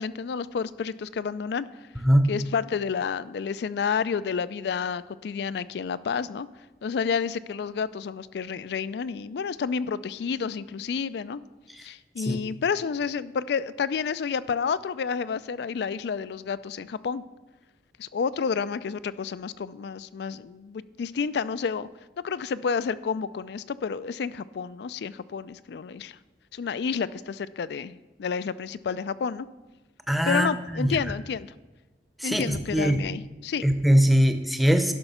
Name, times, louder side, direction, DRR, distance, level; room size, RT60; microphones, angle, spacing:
voice 1, 0.0-1.7 2.3-6.5 6.8-11.4 11.8-17.2 18.0-21.9 22.2-26.2 26.5-29.5 30.2-31.5 32.2-33.6, left 6 dB, 65° left, 17 dB, 0.4 m, -30 dB
voice 2, 2.0-2.3 12.3-12.4 30.1-31.0 32.2-33.0 33.6-34.9, equal, ahead, 7 dB, 0.7 m, -21 dB
11.0 x 5.8 x 5.5 m, 1.1 s
head